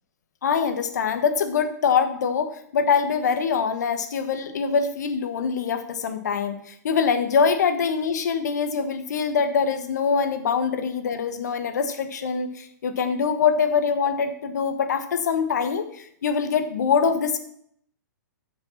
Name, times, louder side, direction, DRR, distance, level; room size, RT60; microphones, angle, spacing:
voice 1, 0.4-17.4, left 6 dB, 65° left, 8 dB, 1.4 m, -24 dB
9.9 x 5.7 x 5.8 m, 0.67 s
hypercardioid pair, 125°, 10 cm